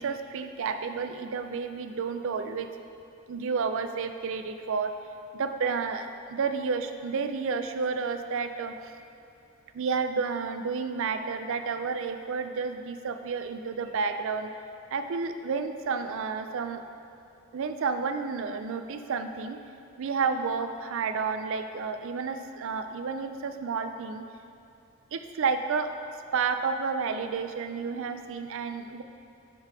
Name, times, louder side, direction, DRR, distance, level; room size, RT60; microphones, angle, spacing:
voice 1, 0.0-2.7 3.3-4.9 5.3-8.7 9.7-14.5 14.9-16.8 17.5-19.6 20.0-24.2 25.1-25.9 26.3-29.0, right 5 dB, 65° right, 8 dB, 0.4 m, -31 dB
6.8 x 4.7 x 4.9 m, 2.7 s
head